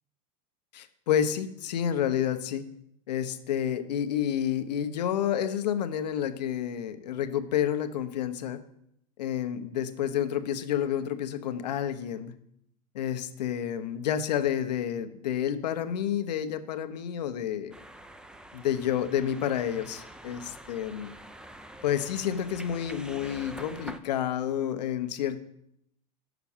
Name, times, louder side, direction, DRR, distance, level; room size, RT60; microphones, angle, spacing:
voice 1, 0.7-2.7 3.1-8.6 9.2-12.3 12.9-17.7 18.5-21.1 21.8-25.4, left 9 dB, 85° left, 10 dB, 0.8 m, -29 dB
sound 1, 17.7-24.0, right 1 dB, 5° right, 0.4 m, -46 dB
6.0 x 6.0 x 7.1 m, 0.75 s
hypercardioid pair, 115°, 21 cm